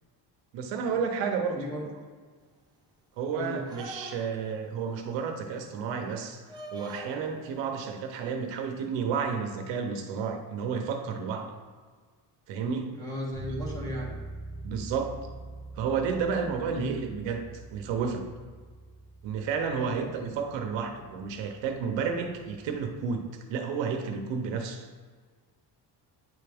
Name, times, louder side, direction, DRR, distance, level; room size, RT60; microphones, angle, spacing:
voice 1, 0.5-1.6 3.2-6.4 6.7-11.5 12.5-12.9 14.6-15.2 15.8-18.2 19.2-23.2 23.5-24.9, right 6 dB, 75° right, 5 dB, 0.8 m, -31 dB
voice 2, 1.5-1.9 3.3-3.6 12.9-14.1 16.6-16.9 19.7-20.0, equal, 10° left, -4 dB, 1.3 m, -35 dB
sound 1, 3.6-4.5 6.5-7.3 8.5-8.7, right 2 dB, 10° right, 0.7 m, -42 dB
Bass guitar, 13.3-23.0, right 2 dB, 60° left, 1.7 m, -44 dB
9.2 x 3.4 x 3.5 m, 1.6 s
cardioid pair, 160°, 44 cm